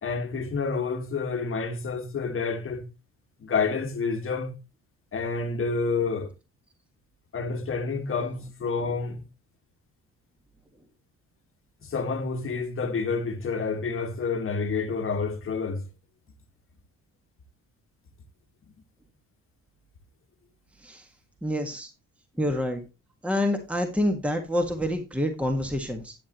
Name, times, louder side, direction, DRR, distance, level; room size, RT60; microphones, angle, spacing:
voice 1, 0.0-2.9 3.4-4.5 5.1-6.3 7.3-9.2 11.8-15.8, left 4 dB, 45° left, 1.6 m, -29 dB
voice 2, 21.4-21.9 22.4-22.8 23.2-26.1, left 1 dB, 5° right, 1.6 m, -27 dB
11.0 x 8.8 x 3.0 m
cardioid pair, 90°, 30 cm